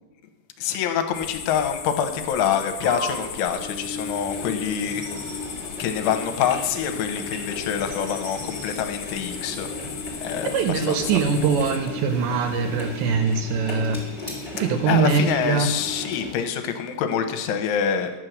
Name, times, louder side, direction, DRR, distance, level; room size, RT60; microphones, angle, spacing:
voice 1, 0.6-5.1 5.8-9.7 10.2-11.2 14.8-18.1, left 8 dB, 85° left, 8 dB, 3.2 m, -26 dB
sound 1, 1.1-11.8, left 8 dB, 70° left, 2.8 m, -37 dB
sound 2, 1.8-13.2, right 2 dB, 60° right, 3.2 m, -44 dB
Engine, 3.1-16.5, left 2 dB, 30° left, 0.7 m, -35 dB
voice 2, 10.5-14.0 14.5-15.7, right 5 dB, 80° right, 6 dB, 2.7 m, -22 dB
12.0 x 7.8 x 6.2 m, 1.1 s
omnidirectional pair, 5.6 m